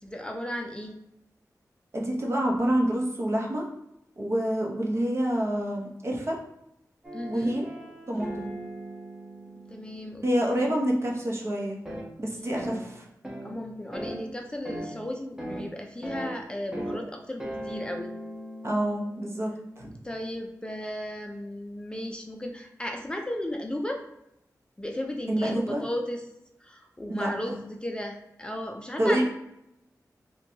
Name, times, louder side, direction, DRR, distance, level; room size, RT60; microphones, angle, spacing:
voice 1, 0.0-0.9 7.1-7.6 9.7-10.3 13.4-18.1 20.0-24.0 24.8-26.2 26.6-29.2, left 1 dB, 15° left, 2 dB, 0.4 m, -35 dB
voice 2, 1.9-3.6 4.2-6.4 7.3-7.7 8.1-8.5 10.2-11.8 12.2-13.1 18.6-19.5 19.8-19.9 25.3-25.8 27.1-27.6 29.0-29.2, right 1 dB, 45° right, -1 dB, 0.8 m, -27 dB
sound 1, 7.0-11.1 11.9-12.1 12.6-12.8 13.2-13.5 13.9-14.2 14.7-14.9 15.4-15.6 16.0-16.3 16.7-17.0 17.4-19.8, right 1 dB, 10° right, 0.8 m, -38 dB
4.1 x 2.2 x 2.8 m, 0.83 s
wide cardioid pair, 85°, 6 cm